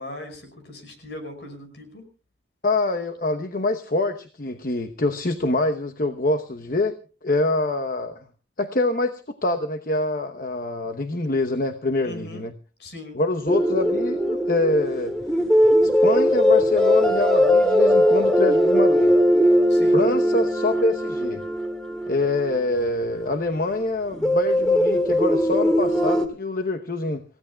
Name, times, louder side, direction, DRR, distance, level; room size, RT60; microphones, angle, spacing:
voice 1, 0.0-2.0 12.0-12.5 12.8-13.2 19.7-20.1, left 1 dB, 65° left, 6 dB, 5.5 m, -39 dB
voice 2, 2.6-7.0 7.2-8.2 8.6-12.5 13.1-15.1 15.8-19.2 19.9-21.4 22.1-27.2, left 2 dB, 50° left, 7 dB, 0.9 m, -25 dB
sound 1, 13.5-23.1 24.1-26.3, equal, 5° left, 1.9 m, -20 dB
28.5 x 16.0 x 2.3 m, 0.35 s
head